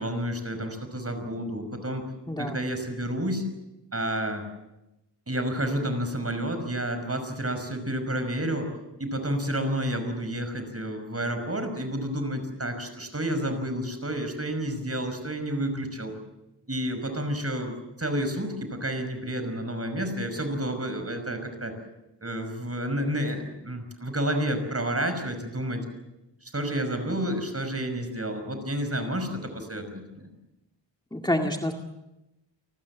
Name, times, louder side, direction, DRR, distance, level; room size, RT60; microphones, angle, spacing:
voice 1, 0.0-2.0 2.4-3.4 3.9-4.4 5.3-8.7 9.0-16.1 16.7-21.7 22.2-25.8 26.4-30.3, right 1 dB, 35° right, 8 dB, 5.7 m, -30 dB
voice 2, 31.1-31.7, left 1 dB, 10° left, 2 dB, 2.0 m, -27 dB
29.5 x 19.5 x 7.3 m, 0.94 s
wide cardioid pair, 80°, 44 cm